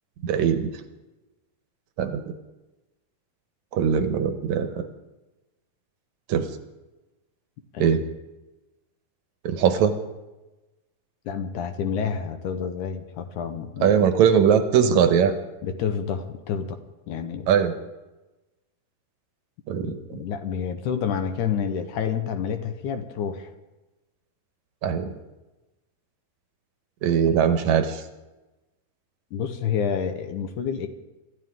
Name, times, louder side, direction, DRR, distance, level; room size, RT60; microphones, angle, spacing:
voice 1, 0.2-0.7 2.0-2.3 3.7-4.9 6.3-6.5 7.8-8.0 9.4-9.9 13.8-15.3 17.5-17.7 19.7-20.2 24.8-25.1 27.0-28.0, right 7 dB, 70° right, 8 dB, 2.1 m, -21 dB
voice 2, 11.3-14.1 15.6-16.8 17.1-17.5 19.8-23.5 29.3-30.9, left 7 dB, 70° left, 8 dB, 2.3 m, -29 dB
26.5 x 13.5 x 3.7 m, 1.1 s
omnidirectional pair, 3.9 m